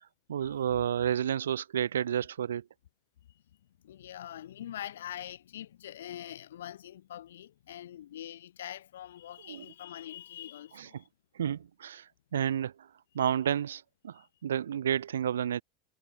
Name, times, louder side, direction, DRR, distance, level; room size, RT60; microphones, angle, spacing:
voice 1, 0.3-2.6 9.5-9.6 10.8-10.9 11.4-12.0 12.3-12.7 13.1-15.6, right 9 dB, 80° right, 1.9 m, -30 dB
voice 2, 3.8-11.1 14.1-14.3, left 11 dB, 75° left, 2.1 m, -44 dB
hypercardioid pair, 90°, 0 cm